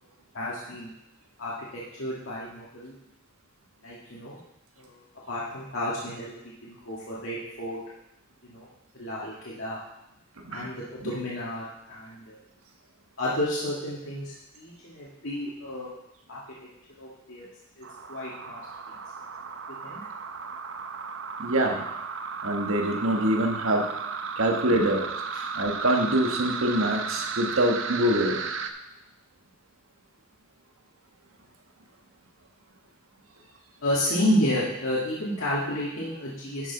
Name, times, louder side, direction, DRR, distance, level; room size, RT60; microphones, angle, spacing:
voice 1, 0.3-0.9 1.4-2.9 3.8-4.4 4.8-6.4 6.6-7.8 8.4-8.7 8.9-9.8 10.5-12.4 13.2-15.9 16.3-16.4 17.0-17.5 17.8-18.6 19.8-20.0 24.7-24.8 25.3-25.4 33.8-36.7, left 1 dB, 70° left, -7 dB, 1.8 m, -31 dB
sound 1, 17.8-28.7, right 5 dB, 65° right, 0.7 m, -35 dB
voice 2, 21.4-21.8 22.4-23.8 24.4-25.0 25.5-28.4, right 1 dB, 80° right, 2 dB, 1.5 m, -24 dB
11.5 x 6.8 x 4.0 m, 0.88 s
head